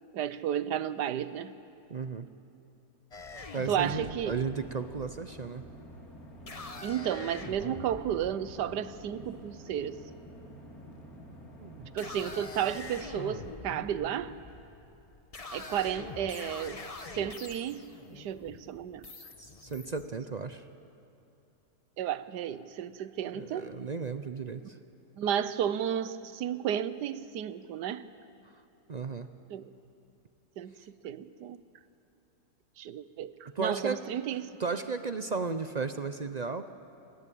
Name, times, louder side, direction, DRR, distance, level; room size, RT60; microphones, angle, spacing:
voice 1, 0.1-1.6 3.7-4.4 6.8-10.0 11.9-14.4 15.5-16.8 17.1-19.1 22.0-23.7 25.2-28.1 29.5-29.7 30.6-31.6 32.8-34.5, right 10 dB, 85° right, 14 dB, 1.4 m, -33 dB
voice 2, 1.9-2.3 3.5-5.6 11.6-11.9 19.4-20.6 23.2-24.8 28.9-29.3 33.6-34.1 34.6-36.7, right 4 dB, 60° right, 10 dB, 0.4 m, -34 dB
sound 1, 3.1-9.9 10.9-11.4 11.8-20.1, left 3 dB, 25° left, 1.0 m, -45 dB
sound 2, 3.7-12.9, equal, 60° left, 3.7 m, -49 dB
28.5 x 20.0 x 8.5 m, 2.8 s
omnidirectional pair, 1.7 m